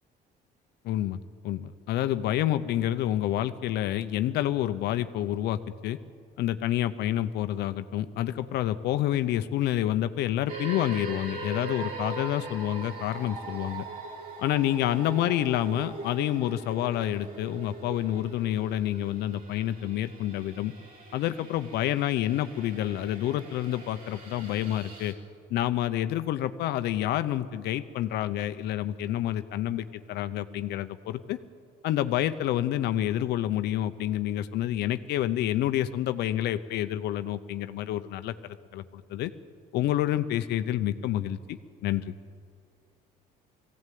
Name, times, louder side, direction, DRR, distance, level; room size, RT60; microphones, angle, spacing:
voice 1, 0.8-1.2 1.4-6.0 6.4-13.8 14.4-20.7 21.1-25.1 25.5-31.4 31.8-38.3 38.7-38.8 39.1-39.3 39.7-42.1, left 12 dB, 80° left, 11 dB, 0.8 m, -28 dB
sound 1, 10.5-25.1, right 3 dB, 55° right, 3.9 m, -41 dB
18.5 x 16.0 x 9.3 m, 2.1 s
cardioid pair, 110°, 17 cm